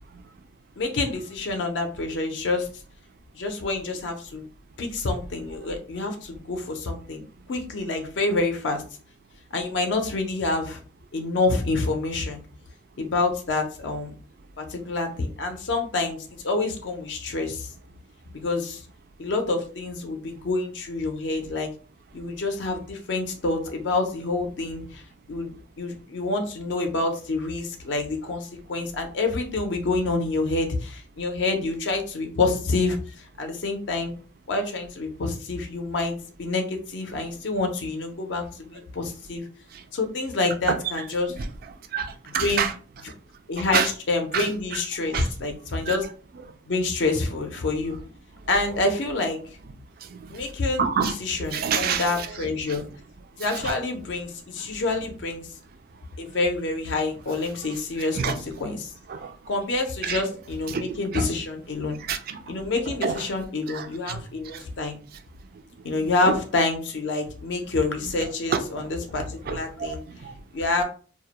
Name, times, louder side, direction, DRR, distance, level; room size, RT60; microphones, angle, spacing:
voice 1, 0.8-2.7 3.3-4.5 4.8-7.2 7.5-8.8 9.5-10.8 11.1-12.4 13.0-14.1 14.6-17.7 18.3-18.8 19.2-21.7 22.1-25.0 25.3-34.1 34.5-39.4 39.9-41.3 42.3-42.7 43.5-46.0 46.7-48.0 48.5-49.4 50.3-52.9 53.4-55.5 56.2-58.9 59.5-62.0 62.5-65.0 65.8-70.0 70.5-70.8, left 3 dB, 65° left, 0.5 m, -27 dB
voice 2, 41.9-42.7 43.6-43.9 44.3-44.5 45.1-45.3 45.9-46.0 50.8-51.1 51.5-52.3 53.6-53.8 58.2-58.4 59.1-59.3 60.0-60.2 60.7-60.8 61.1-61.3 62.1-62.4 63.0-63.2 63.7-64.2 66.2-66.4 68.5-68.9 69.5-70.3, right 6 dB, 50° right, 0.3 m, -27 dB
2.2 x 2.0 x 2.8 m
head